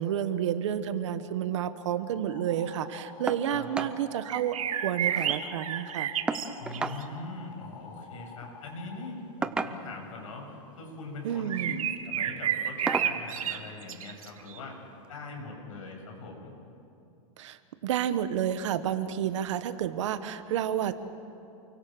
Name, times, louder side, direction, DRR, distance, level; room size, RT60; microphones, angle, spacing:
voice 1, 0.0-4.6 4.8-6.1 11.2-11.9 17.4-21.0, right 10 dB, 60° right, 11 dB, 1.4 m, -30 dB
sound 1, 2.3-9.1, left 5 dB, 30° left, 3.0 m, -49 dB
sound 2, 3.3-3.5 3.7-4.0 4.3-4.4 4.7-5.4 6.3-7.0 8.3-8.5 9.4-10.1 11.1-11.4 11.9-12.1 12.9-13.2 14.4-14.5 15.0-15.1, right 4 dB, 5° right, 0.5 m, -33 dB
sound 3, 4.3-7.0 11.5-14.6, right 10 dB, 90° right, 1.5 m, -31 dB
voice 2, 6.6-14.8 15.1-16.5, left 3 dB, 70° left, 1 dB, 8.0 m, -41 dB
29.0 x 23.5 x 7.8 m, 2.7 s
supercardioid pair, 175°, 18 cm